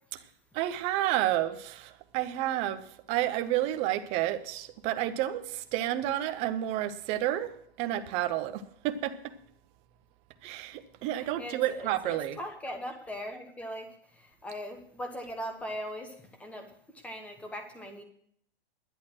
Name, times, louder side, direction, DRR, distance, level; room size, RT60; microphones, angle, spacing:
voice 1, 0.5-9.3 10.4-12.4, right 13 dB, 20° right, 0.6 m, -30 dB
voice 2, 11.1-13.9 14.1-18.0, equal, 5° left, 1.2 m, -40 dB
11.0 x 10.0 x 6.1 m
hypercardioid pair, 155°, 31 cm